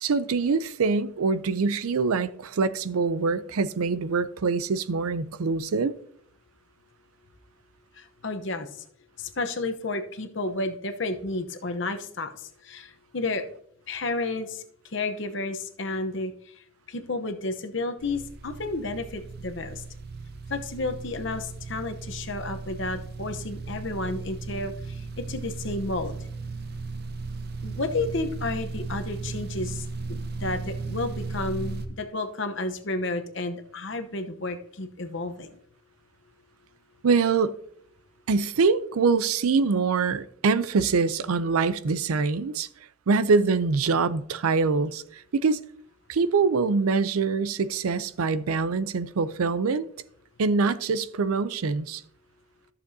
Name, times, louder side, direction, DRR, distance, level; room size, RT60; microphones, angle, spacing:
voice 1, 0.0-5.9 37.0-37.5 38.3-42.7 43.1-45.6 46.1-49.9 50.4-52.0, right 4 dB, 90° right, 0.5 m, -24 dB
voice 2, 8.0-8.7 9.2-13.4 13.9-14.6 14.9-19.8 20.5-26.2 27.6-35.6, left 2 dB, 60° left, 0.9 m, -32 dB
sound 1, 18.0-31.9, right 3 dB, 45° right, 0.6 m, -36 dB
14.0 x 6.8 x 2.7 m
head